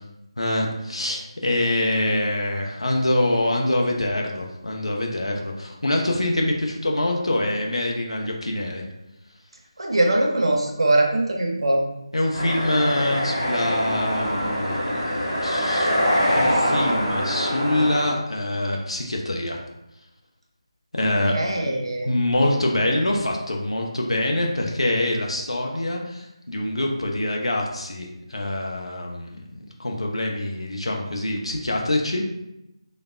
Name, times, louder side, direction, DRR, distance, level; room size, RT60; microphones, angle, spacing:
voice 1, 0.4-8.8 12.1-15.9 16.3-19.6 20.9-21.4 21.6-21.7 22.1-32.3, left 1 dB, 70° left, 0 dB, 0.5 m, -25 dB
voice 2, 9.8-11.8 21.0-22.2, right 1 dB, 60° right, 1 dB, 0.5 m, -22 dB
sound 1, 12.3-18.1, equal, 20° left, 0.7 m, -24 dB
3.2 x 2.1 x 2.4 m, 0.87 s
figure-of-eight pair, 160°, 3 cm